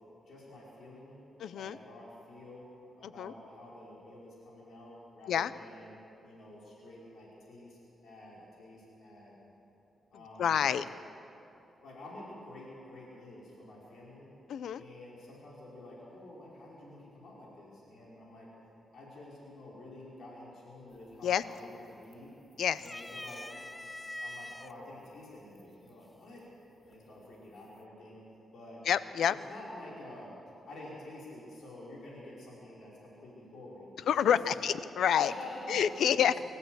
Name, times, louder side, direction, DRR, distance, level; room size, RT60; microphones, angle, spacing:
voice 1, 0.3-1.2 1.5-2.6 3.0-9.3 10.1-10.8 11.8-14.3 14.7-18.5 18.9-22.3 22.8-23.4 24.2-26.4 26.8-28.2 28.5-28.8 29.3-30.4 30.6-34.7 35.1-35.8 36.2-36.4, left 1 dB, 65° left, -5 dB, 5.4 m, -49 dB
voice 2, 1.4-1.8 3.0-3.3 5.3-5.5 10.4-10.8 14.5-14.8 21.2-21.4 22.6-22.8 28.8-29.4 34.1-35.3 35.7-36.3, left 9 dB, 85° left, 15 dB, 0.6 m, -28 dB
sound 1, 20.9-21.3 21.7-22.4 22.8-24.7 25.6-25.7 26.9-27.4, left 1 dB, 10° left, 0.5 m, -44 dB
25.0 x 14.5 x 8.0 m, 2.9 s
cardioid pair, 125°, 0 cm